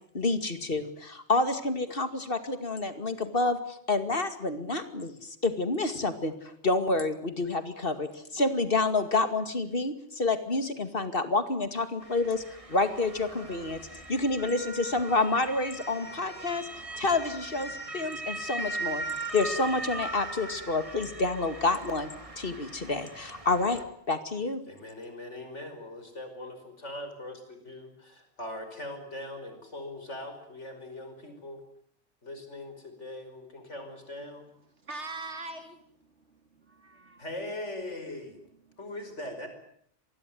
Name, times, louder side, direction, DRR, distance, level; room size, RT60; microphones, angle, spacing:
voice 1, 0.1-6.3 6.6-12.4 12.7-13.8 14.1-16.7 17.0-19.0 19.3-23.8 24.1-24.6, left 3 dB, 50° left, 9 dB, 2.5 m, -28 dB
Motor vehicle (road) / Siren, 12.0-23.8, right 2 dB, 30° right, 2.8 m, -39 dB
voice 2, 24.7-31.6 32.2-34.4 37.2-38.4 38.8-39.5, left 1 dB, 80° left, 7 dB, 5.7 m, -41 dB
voice 3, 34.8-35.8 36.3-37.2 38.7-38.8, right 2 dB, 70° right, 8 dB, 3.2 m, -42 dB
25.0 x 20.5 x 9.3 m, 0.66 s
omnidirectional pair, 1.2 m